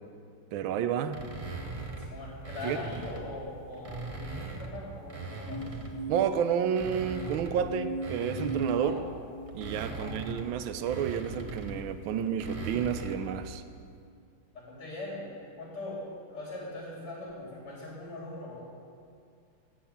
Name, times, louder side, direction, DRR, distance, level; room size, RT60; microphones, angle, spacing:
voice 1, 0.5-1.2 2.6-2.8 6.1-9.0 9.5-13.6, right 8 dB, 75° right, 10 dB, 1.4 m, -30 dB
sound 1, 1.1-3.3 3.7-6.1 6.6-13.4, right 3 dB, 55° right, 0.3 m, -40 dB
voice 2, 2.0-5.6 8.7-9.0 9.9-10.1 14.5-16.0 16.3-18.6, left 2 dB, 80° left, -6 dB, 5.0 m, -41 dB
sound 2, 5.5-12.9 13.5-14.0, right 2 dB, 5° left, 0.5 m, -40 dB
12.5 x 7.9 x 8.6 m, 2.3 s
omnidirectional pair, 2.4 m